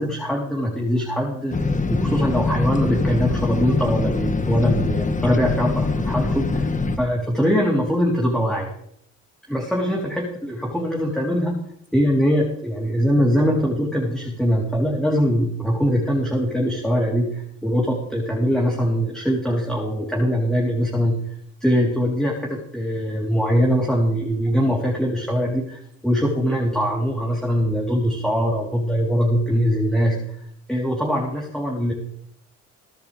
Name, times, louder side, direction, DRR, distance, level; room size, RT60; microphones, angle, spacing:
voice 1, 0.0-1.6 1.9-8.7 9.5-11.6 11.9-21.1 21.6-30.2 30.7-31.9, equal, ahead, -3 dB, 3.9 m, -22 dB
sound 1, 1.5-7.0, left 3 dB, 25° left, 1.5 m, -23 dB
22.5 x 10.5 x 3.5 m, 0.69 s
cardioid pair, 90°, 30 cm